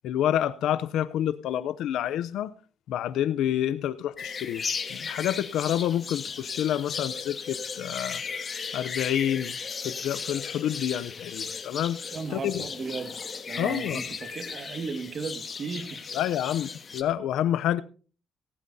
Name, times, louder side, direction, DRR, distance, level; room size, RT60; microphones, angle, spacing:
voice 1, 0.0-2.5 2.9-4.6 4.9-9.6 9.8-12.6 13.6-14.0 16.1-17.8, left 11 dB, 85° left, 0.5 m, -28 dB
sound 1, 4.2-17.0, left 5 dB, 40° left, 1.4 m, -36 dB
voice 2, 12.1-13.2 13.5-16.0, right 5 dB, 50° right, 1.9 m, -35 dB
18.0 x 16.0 x 2.7 m
cardioid pair, 90°, 0 cm